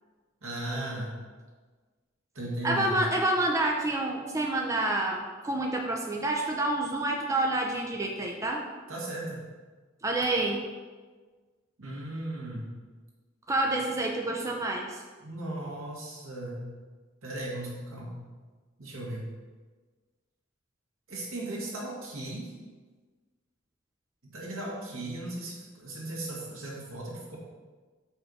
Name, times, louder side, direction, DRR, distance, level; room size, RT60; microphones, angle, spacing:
voice 1, 0.4-1.2 2.4-3.1 8.9-9.4 11.8-12.7 15.2-16.7 17.2-18.2 18.8-19.2 21.1-22.5 24.2-27.4, right 1 dB, 80° right, -4 dB, 2.0 m, -36 dB
voice 2, 2.6-8.6 10.0-10.7 13.5-15.0, right 2 dB, 15° right, 0 dB, 0.5 m, -28 dB
5.6 x 4.6 x 5.4 m, 1.4 s
head